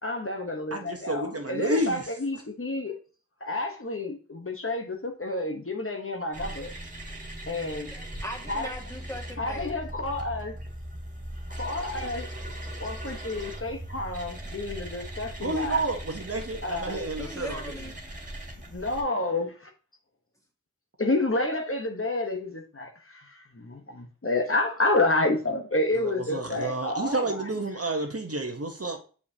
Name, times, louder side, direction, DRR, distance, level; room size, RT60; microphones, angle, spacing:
voice 1, 0.0-2.9 3.4-6.7 7.5-7.9 8.5-8.7 9.4-10.5 11.6-12.3 12.8-15.8 16.6-17.1 18.7-19.7 21.0-27.4, left 2 dB, 40° left, 1.0 m, -29 dB
voice 2, 0.7-2.1 15.4-17.7 25.9-29.0, right 2 dB, 45° right, 1.0 m, -30 dB
sound 1, 6.3-19.0, right 1 dB, 25° right, 1.9 m, -39 dB
voice 3, 7.7-9.9 17.2-17.9, equal, 10° left, 1.8 m, -40 dB
6.9 x 5.1 x 2.8 m
wide cardioid pair, 45°, 32 cm